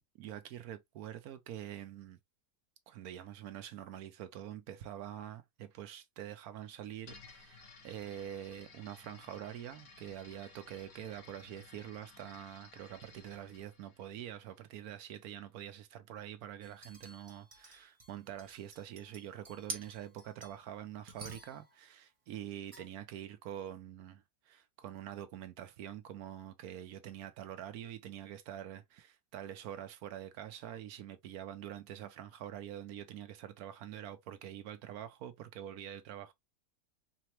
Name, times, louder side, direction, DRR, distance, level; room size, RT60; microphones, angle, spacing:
voice 1, 0.1-2.2 2.9-36.3, right 11 dB, 75° right, 1.1 m, -45 dB
sound 1, 7.0-14.8, left 4 dB, 65° left, 1.7 m, -57 dB
sound 2, 16.6-20.7 21.1-21.8 22.7-22.8, right 3 dB, 35° right, 0.5 m, -49 dB
4.2 x 2.1 x 2.8 m
omnidirectional pair, 1.7 m